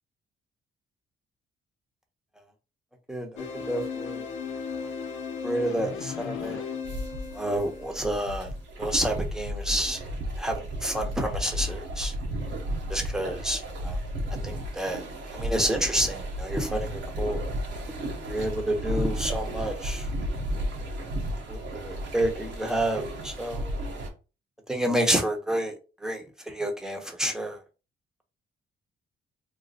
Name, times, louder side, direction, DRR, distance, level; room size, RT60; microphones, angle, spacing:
voice 1, 3.1-4.3 5.4-6.6 7.3-8.5 8.8-10.0 10.4-12.1 12.9-14.0 14.4-15.0 15.3-17.4 17.9-18.0 18.3-20.1 21.5-23.7 24.7-25.7 26.0-27.6, right 1 dB, 5° right, 0.9 m, -29 dB
sound 1, 3.4-8.6, left 6 dB, 85° left, 0.6 m, -36 dB
sound 2, 6.8-24.1, equal, 70° right, 1.0 m, -33 dB
3.1 x 2.0 x 3.8 m
cardioid pair, 90°, 20 cm